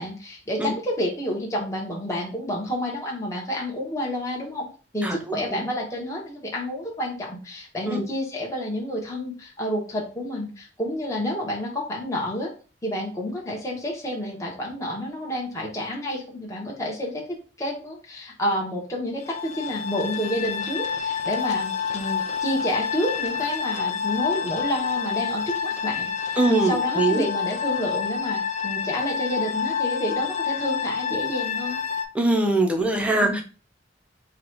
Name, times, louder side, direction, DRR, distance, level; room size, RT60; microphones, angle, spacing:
voice 1, 0.0-4.7 4.9-12.5 12.8-17.2 17.6-31.8 33.2-33.4, equal, 15° left, -2 dB, 1.1 m, -29 dB
voice 2, 5.0-5.6 7.8-8.0 26.4-27.2 32.1-33.4, right 2 dB, 5° right, 3 dB, 0.7 m, -23 dB
sound 1, 19.2-32.0, left 6 dB, 40° left, 0.5 m, -28 dB
3.9 x 2.4 x 4.5 m, 0.36 s
head